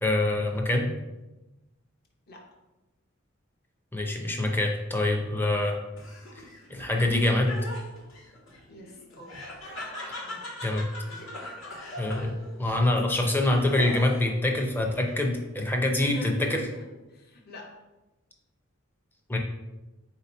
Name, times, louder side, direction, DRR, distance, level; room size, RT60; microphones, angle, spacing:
voice 1, 0.0-0.9 3.9-5.8 6.7-7.6 10.6-10.9 12.0-16.7 19.3-19.4, left 1 dB, 10° left, 2 dB, 0.5 m, -25 dB
Laughter, 5.9-14.4 14.8-15.5, left 1 dB, 70° left, 1.2 m, -41 dB
voice 2, 8.7-9.3 10.2-10.5 15.9-17.7, equal, 50° left, 0 dB, 0.8 m, -43 dB
3.7 x 2.9 x 4.2 m, 1.0 s
head